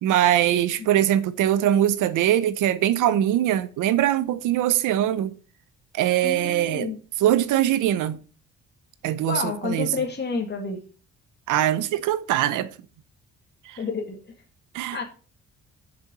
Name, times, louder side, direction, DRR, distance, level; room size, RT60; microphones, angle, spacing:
voice 1, 0.0-5.3 5.9-6.9 7.2-8.2 9.0-9.9 11.5-12.7 13.7-13.8 14.7-15.0, right 12 dB, 90° right, 0.8 m, -22 dB
voice 2, 6.2-7.0 9.3-10.8 13.8-14.2 14.9-15.0, left 5 dB, 35° left, 2.1 m, -29 dB
7.0 x 6.4 x 6.2 m
cardioid pair, 90°, 30 cm